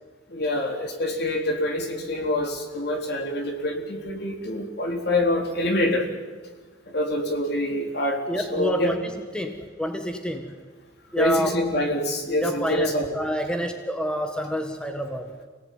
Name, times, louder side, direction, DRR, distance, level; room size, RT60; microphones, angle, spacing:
voice 1, 0.3-6.1 6.9-8.2 8.5-8.9 11.2-13.2, left 1 dB, 60° left, 3 dB, 4.0 m, -25 dB
voice 2, 8.3-10.5 11.1-11.7 12.4-15.3, equal, 5° left, 5 dB, 1.6 m, -28 dB
28.5 x 18.0 x 9.6 m, 1.4 s
head